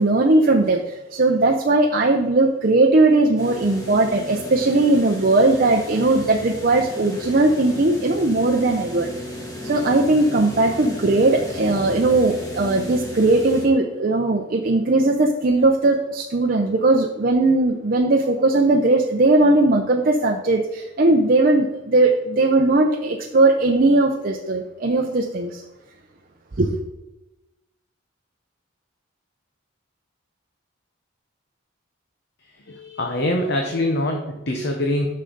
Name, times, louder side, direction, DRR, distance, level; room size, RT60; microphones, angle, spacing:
voice 1, 0.0-9.1 9.6-25.6 26.6-26.7, right 2 dB, 45° right, 2 dB, 0.6 m, -18 dB
sound 1, 3.4-13.7, equal, 15° left, 1.7 m, -34 dB
voice 2, 32.6-35.1, left 1 dB, 55° left, 3 dB, 0.9 m, -24 dB
10.0 x 6.5 x 3.9 m, 0.99 s
head